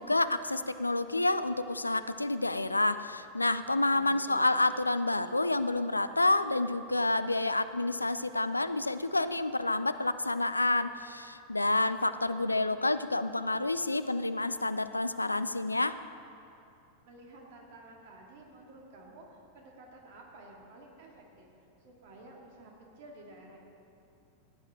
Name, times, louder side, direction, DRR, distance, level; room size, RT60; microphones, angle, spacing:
voice 1, 0.0-16.0, left 2 dB, 85° left, 13 dB, 0.4 m, -29 dB
voice 2, 3.9-4.6 17.0-21.5 21.8-23.6, right 2 dB, 50° right, 0 dB, 2.2 m, -52 dB
16.5 x 9.7 x 3.7 m, 2.7 s
figure-of-eight pair, 90°, 0 cm